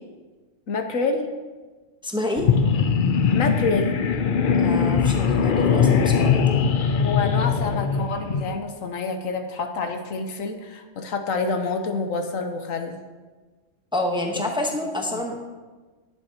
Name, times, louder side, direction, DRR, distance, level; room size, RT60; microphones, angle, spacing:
voice 1, 0.7-1.3 3.3-4.1 7.0-13.0 15.1-15.2, left 4 dB, 85° left, 6 dB, 1.3 m, -27 dB
voice 2, 2.0-2.8 4.5-6.4 13.9-15.4, left 1 dB, 5° right, 2 dB, 0.9 m, -28 dB
sound 1, 2.4-8.6, left 6 dB, 55° left, 0.6 m, -21 dB
19.0 x 7.1 x 2.9 m, 1.3 s
omnidirectional pair, 1.3 m